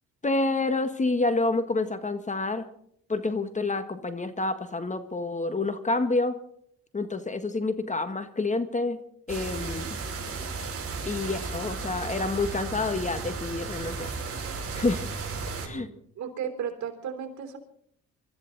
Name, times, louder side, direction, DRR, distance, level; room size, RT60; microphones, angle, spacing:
voice 1, 0.2-2.7 3.1-6.4 6.9-9.0 9.3-10.0 11.0-14.1 14.5-15.1 15.6-15.9, left 3 dB, 25° left, 10 dB, 1.5 m, -28 dB
sound 1, 9.3-15.7, right 4 dB, 45° right, 5.7 m, -34 dB
voice 2, 15.6-17.6, right 8 dB, 65° right, 5 dB, 3.8 m, -35 dB
24.0 x 13.5 x 4.0 m, 0.65 s
cardioid pair, 90°, 30 cm